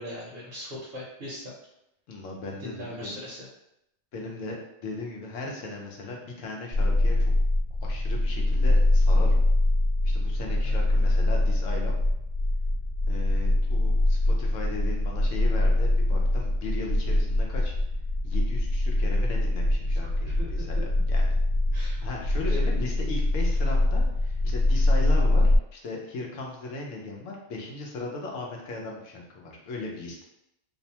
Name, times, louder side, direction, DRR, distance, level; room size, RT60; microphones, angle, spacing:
voice 1, 0.0-1.5 2.6-3.4 10.5-10.8 20.2-20.5 21.7-22.7, left 1 dB, 55° right, -6 dB, 0.7 m, -40 dB
voice 2, 2.1-3.2 4.1-4.6 4.8-7.3 7.8-9.4 10.0-11.9 13.1-17.7 18.2-21.4 21.8-25.4 25.7-30.2, left 2 dB, 90° left, -1 dB, 1.0 m, -37 dB
sound 1, 6.7-25.6, left 1 dB, 80° right, 1.0 m, -23 dB
2.6 x 2.1 x 2.7 m, 0.83 s
omnidirectional pair, 1.3 m